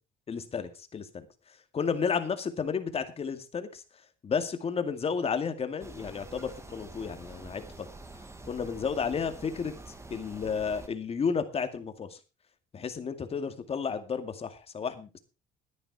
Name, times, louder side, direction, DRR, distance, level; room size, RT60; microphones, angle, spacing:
voice 1, 0.3-1.3 1.7-3.8 4.2-7.6 8.4-12.2 12.7-15.2, left 6 dB, 35° left, 8 dB, 2.3 m, -32 dB
sound 1, 5.8-10.9, right 2 dB, 15° right, 2.0 m, -47 dB
14.0 x 10.0 x 4.8 m, 0.31 s
cardioid pair, 110°, 17 cm